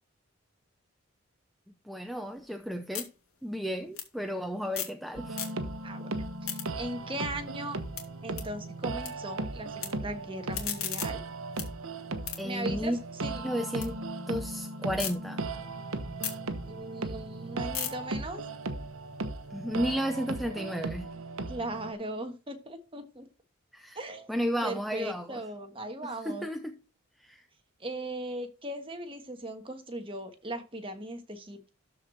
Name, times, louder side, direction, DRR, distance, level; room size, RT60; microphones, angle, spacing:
voice 1, 1.8-3.1 3.4-5.4 12.4-13.0 13.4-14.0 14.3-15.5 19.5-21.1 23.7-24.0 24.3-25.4 26.2-26.7 27.2-27.4, equal, ahead, 0.6 m, -33 dB
sound 1, 2.0-5.0 5.3-5.9 6.2-9.1 9.4-9.9 10.3-13.9 14.3-15.1 15.6-19.7, left 10 dB, 80° left, 2.5 m, -40 dB
sound 2, 5.1-21.9, right 2 dB, 70° right, 1.0 m, -37 dB
voice 2, 6.4-7.8 8.2-11.2 12.4-12.9 13.2-13.4 16.7-18.4 21.5-23.3 23.9-24.4 24.6-26.5 27.8-31.8, right 1 dB, 25° right, 1.4 m, -38 dB
12.5 x 4.8 x 4.1 m
head